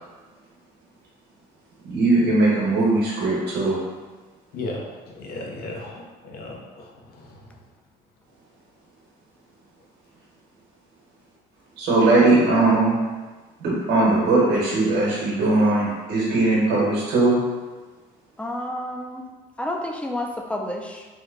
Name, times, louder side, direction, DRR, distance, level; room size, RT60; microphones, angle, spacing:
voice 1, 1.8-3.8 11.8-13.0 13.6-17.4, right 2 dB, 75° right, -5 dB, 1.0 m, -19 dB
voice 2, 4.5-4.8 5.1-6.9, left 2 dB, 70° left, -1 dB, 0.7 m, -34 dB
voice 3, 18.4-19.3 19.6-21.1, left 1 dB, 5° left, 2 dB, 0.3 m, -30 dB
2.9 x 2.1 x 3.6 m, 1.3 s
cardioid pair, 110°, 17 cm